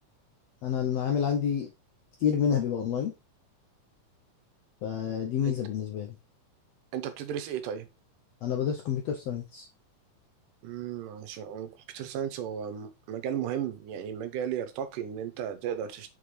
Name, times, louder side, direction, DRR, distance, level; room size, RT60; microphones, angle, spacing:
voice 1, 0.6-1.7 2.2-3.1 4.8-6.1 8.4-9.7, left 8 dB, 80° left, 1.5 m, -28 dB
voice 2, 6.9-7.9 10.6-16.1, right 9 dB, 80° right, 2.4 m, -34 dB
5.9 x 5.3 x 3.2 m
omnidirectional pair, 3.7 m